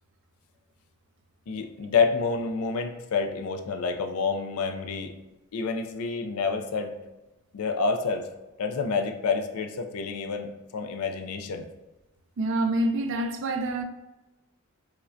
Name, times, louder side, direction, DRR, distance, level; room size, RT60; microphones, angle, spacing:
voice 1, 1.5-5.1 5.5-6.9 7.5-8.3 8.6-11.7, left 4 dB, 90° left, 0.4 m, -28 dB
voice 2, 12.4-13.8, right 1 dB, 60° right, 0.4 m, -26 dB
4.8 x 2.1 x 2.5 m
head